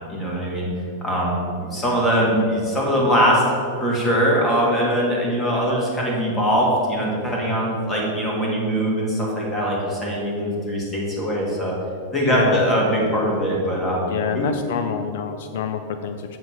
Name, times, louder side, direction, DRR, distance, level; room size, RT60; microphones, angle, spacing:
voice 1, 0.1-0.7 1.0-3.4 3.8-11.7 12.1-14.0 14.3-14.5, equal, 10° left, -4 dB, 1.7 m, -21 dB
voice 2, 12.2-12.6 14.1-16.4, left 7 dB, 60° left, 8 dB, 0.4 m, -27 dB
7.6 x 4.9 x 6.2 m, 2.5 s
supercardioid pair, 165°, 0 cm